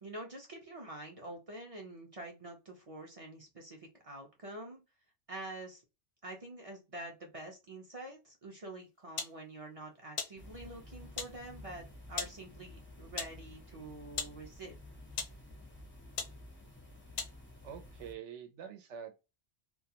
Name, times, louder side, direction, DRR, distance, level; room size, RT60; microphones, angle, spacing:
voice 1, 0.0-4.8 5.3-5.8 6.2-14.8, right 1 dB, 40° right, 0.5 m, -47 dB
sound 1, 9.2-9.4 10.2-10.4 11.2-11.4 12.2-12.4 13.2-13.4 14.2-14.4 15.1-15.4 16.2-16.4 17.2-17.4, left 6 dB, 90° left, 0.9 m, -38 dB
sound 2, 10.4-18.1, left 1 dB, 15° left, 0.4 m, -52 dB
voice 2, 17.6-19.1, right 8 dB, 85° right, 0.9 m, -46 dB
2.3 x 2.3 x 2.7 m
omnidirectional pair, 1.2 m